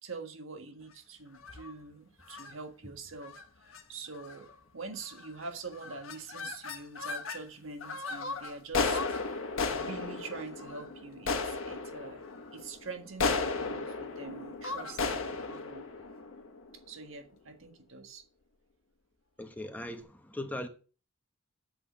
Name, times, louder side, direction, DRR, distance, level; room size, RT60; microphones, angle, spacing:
voice 1, 0.0-9.0 9.7-12.2 12.5-15.8 16.9-18.2, right 4 dB, 70° right, 1.6 m, -45 dB
sound 1, 1.3-1.7 2.3-2.5 3.2-3.4 3.7-3.8 4.2-4.5 5.1-5.4 5.7-7.4 7.8-17.0, left 4 dB, 75° left, 1.3 m, -35 dB
voice 2, 19.4-20.7, left 1 dB, 10° left, 1.0 m, -39 dB
7.9 x 6.1 x 6.8 m
head